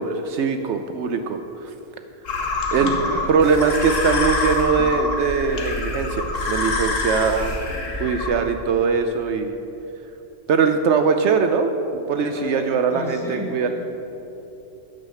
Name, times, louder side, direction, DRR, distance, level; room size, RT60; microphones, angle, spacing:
voice 1, 0.0-1.7 2.7-2.9 3.3-7.5 8.0-9.5 10.5-13.7, right 5 dB, 70° right, 7 dB, 0.8 m, -21 dB
sound 1, 2.3-8.3, left 3 dB, 75° left, 1.5 m, -25 dB
voice 2, 2.7-3.3 7.7-8.0 12.2-13.7, equal, ahead, -6 dB, 2.5 m, -34 dB
9.5 x 6.5 x 6.9 m, 3.0 s
omnidirectional pair, 1.3 m